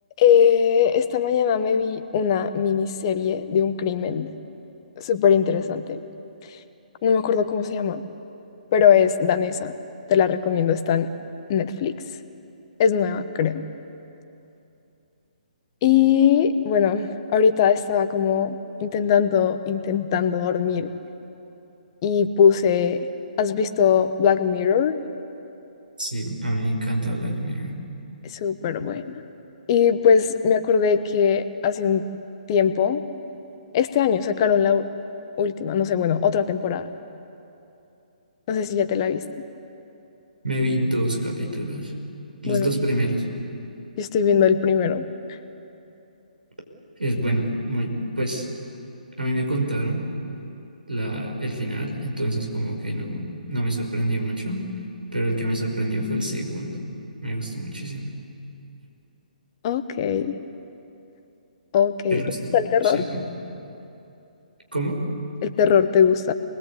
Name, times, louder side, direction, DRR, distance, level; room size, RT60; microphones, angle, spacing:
voice 1, 0.2-4.3 5.0-6.0 7.0-8.0 8.7-9.7 10.1-11.1 11.5-11.9 12.8-13.6 15.8-20.9 22.0-23.0 23.4-25.0 28.2-29.2 29.7-32.1 32.5-33.0 33.7-34.8 35.4-36.9 38.5-39.2 42.5-42.7 44.0-45.1 59.6-60.4 61.7-62.2 62.5-63.0 65.4-66.3, left 7 dB, 30° left, 10 dB, 1.2 m, -20 dB
voice 2, 26.0-27.8 40.4-41.9 42.4-43.3 47.0-48.5 49.2-50.1 50.9-54.7 55.1-56.8 57.2-58.1 62.1-62.4 62.8-63.2 64.7-65.1, right 1 dB, 75° right, 2 dB, 5.4 m, -26 dB
27.5 x 21.0 x 8.5 m, 2.8 s
figure-of-eight pair, 135°, 5 cm